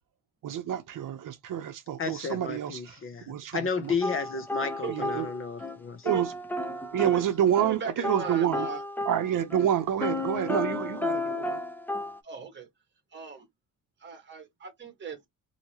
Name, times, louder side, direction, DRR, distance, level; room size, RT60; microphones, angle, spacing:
voice 1, 0.4-3.0 3.3-3.9 4.9-5.3 6.1-6.3 6.9-8.7 9.1-11.6, right 10 dB, 60° right, 0.7 m, -28 dB
voice 2, 2.0-6.1, left 5 dB, 35° left, 0.7 m, -32 dB
sound 1, 4.0-5.8 6.1-7.8 8.0-12.2, left 2 dB, 5° left, 0.4 m, -33 dB
voice 3, 7.6-8.8 12.2-12.7 13.1-13.5 14.0-15.3, right 5 dB, 30° right, 1.3 m, -39 dB
2.9 x 2.8 x 2.8 m
cardioid pair, 150°, 36 cm